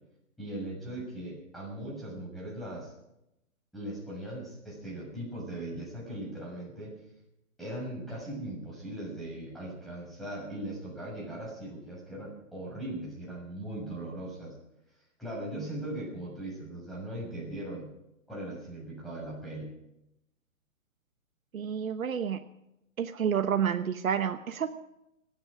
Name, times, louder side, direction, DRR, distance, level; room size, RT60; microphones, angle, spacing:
voice 1, 0.4-2.9 3.7-6.9 7.6-14.5 15.2-17.9 18.3-19.7, right 1 dB, ahead, -5 dB, 6.5 m, -39 dB
voice 2, 21.5-22.4 23.0-24.7, right 8 dB, 80° right, 8 dB, 1.1 m, -29 dB
28.5 x 9.7 x 5.0 m, 0.85 s
hypercardioid pair, 155°, 41 cm